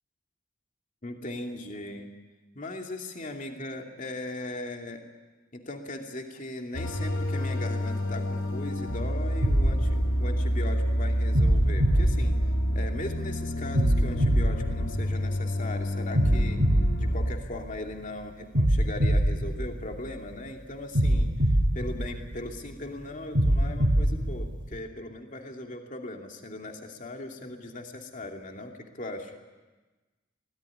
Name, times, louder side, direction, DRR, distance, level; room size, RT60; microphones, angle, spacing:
voice 1, 1.0-2.1 2.5-5.0 5.5-12.3 12.7-16.6 17.0-21.3 21.7-29.3, left 2 dB, 40° left, 2 dB, 2.7 m, -38 dB
sound 1, 6.7-17.3, equal, 80° left, 2.5 m, -28 dB
sound 2, 9.4-10.7 11.3-13.1 13.7-15.5 16.1-17.9 18.5-20.3 20.9-22.7 23.3-24.7, equal, 65° right, 2.7 m, -25 dB
24.0 x 18.5 x 9.9 m, 1.2 s
head